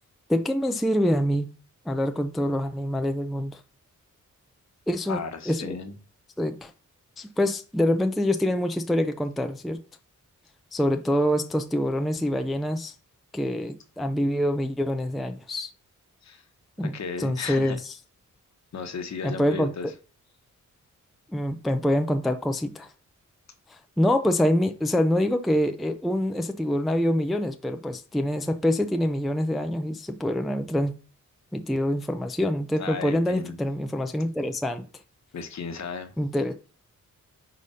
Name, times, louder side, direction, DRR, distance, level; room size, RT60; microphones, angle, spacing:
voice 1, 0.3-1.5 1.9-3.6 4.9-5.2 5.5-5.8 6.4-6.7 7.2-9.8 10.7-12.9 13.3-15.7 16.8-17.9 19.2-19.7 21.3-22.9 23.7-30.9 31.5-34.9 36.2-36.5, left 1 dB, ahead, 0.4 m, -25 dB
voice 2, 5.1-6.0 16.2-16.4 16.8-17.8 18.7-19.9 32.8-33.5 35.3-36.1, left 5 dB, 60° left, 1.0 m, -35 dB
5.0 x 4.0 x 5.5 m
wide cardioid pair, 160°, 32 cm